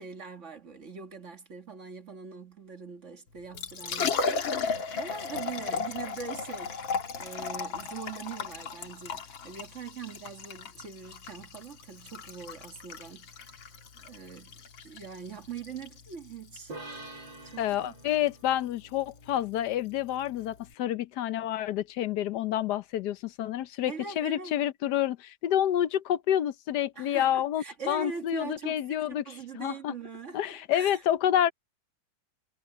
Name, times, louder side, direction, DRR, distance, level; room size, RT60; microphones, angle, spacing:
voice 1, 0.0-6.8 7.2-13.6 13.9-14.6 14.8-16.8 17.4-17.9 23.9-24.5 27.0-31.0, right 5 dB, 40° right, 1.9 m, -42 dB
Liquid, 3.4-20.7, left 5 dB, 85° left, 2.5 m, -36 dB
sound 1, 16.7-20.2, right 2 dB, 75° right, 8.0 m, -47 dB
voice 2, 17.6-29.2 29.5-29.9 30.3-31.5, left 11 dB, 65° left, 1.2 m, -28 dB
omnidirectional pair, 2.1 m